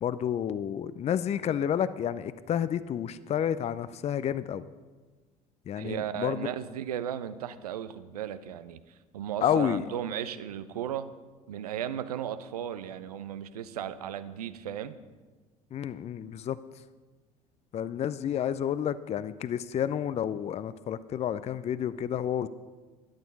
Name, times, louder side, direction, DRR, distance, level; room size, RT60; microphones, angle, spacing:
voice 1, 0.0-4.6 5.7-6.5 9.4-9.8 15.7-16.6 17.7-22.5, left 9 dB, 35° left, 15 dB, 0.5 m, -30 dB
voice 2, 5.8-8.8 9.1-11.1 11.5-14.9, right 10 dB, 80° right, 13 dB, 0.7 m, -35 dB
12.5 x 11.0 x 5.4 m, 1.3 s
figure-of-eight pair, 65°, 19 cm